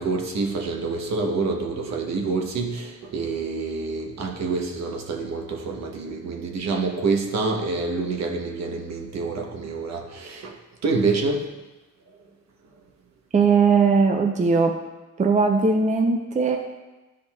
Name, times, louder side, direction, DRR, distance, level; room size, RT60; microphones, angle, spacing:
voice 1, 0.0-11.5, right 3 dB, 65° right, 3 dB, 1.0 m, -27 dB
voice 2, 13.3-14.8 15.2-16.6, right 4 dB, 25° right, 3 dB, 0.6 m, -19 dB
10.5 x 5.0 x 2.3 m, 1.1 s
cardioid pair, 90°, 30 cm